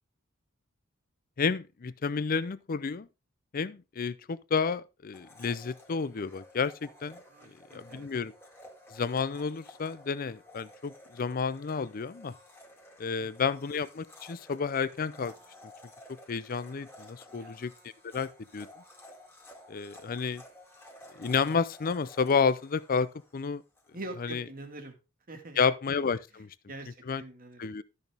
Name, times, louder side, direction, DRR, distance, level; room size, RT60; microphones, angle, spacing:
voice 1, 1.4-3.1 3.5-7.2 7.7-8.3 8.9-12.3 13.0-15.3 16.3-17.7 18.0-18.7 19.7-20.4 21.2-23.6 24.2-24.4 25.6-26.5 27.1-27.2 27.6-27.8, left 5 dB, 45° left, 0.5 m, -31 dB
Domestic sounds home sounds, 5.1-23.9, left 1 dB, 10° left, 1.9 m, -53 dB
voice 2, 7.3-8.1 17.3-17.6 23.9-25.0 25.3-25.6 26.7-27.7, right 2 dB, 45° right, 1.8 m, -44 dB
12.5 x 6.3 x 3.4 m
head